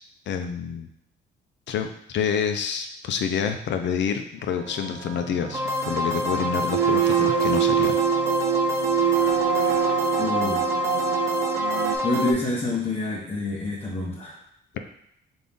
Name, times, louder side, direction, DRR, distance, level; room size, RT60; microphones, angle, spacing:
voice 1, 0.3-0.9 1.7-8.0, left 7 dB, 65° left, 7 dB, 0.5 m, -28 dB
sound 1, 4.7-12.0, right 11 dB, 80° right, 0.4 m, -25 dB
sound 2, 5.5-12.3, left 1 dB, 15° right, 0.4 m, -27 dB
voice 2, 10.2-10.6 12.0-14.3, left 2 dB, 30° left, -6 dB, 0.9 m, -27 dB
3.8 x 2.6 x 3.5 m, 0.76 s
cardioid pair, 90°, 20 cm